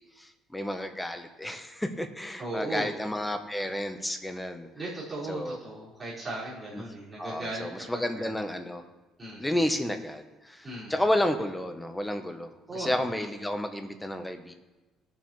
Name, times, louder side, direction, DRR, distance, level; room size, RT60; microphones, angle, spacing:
voice 1, 0.0-4.7 5.3-5.6 6.7-6.8 7.2-8.8 9.4-14.5, left 1 dB, 5° left, 7 dB, 0.7 m, -31 dB
voice 2, 2.4-3.0 4.7-8.4 9.2-9.6 10.6-10.9 12.7-13.3, right 2 dB, 15° right, -9 dB, 4.0 m, -37 dB
19.0 x 7.1 x 3.1 m, 1.1 s
cardioid pair, 160°, 0 cm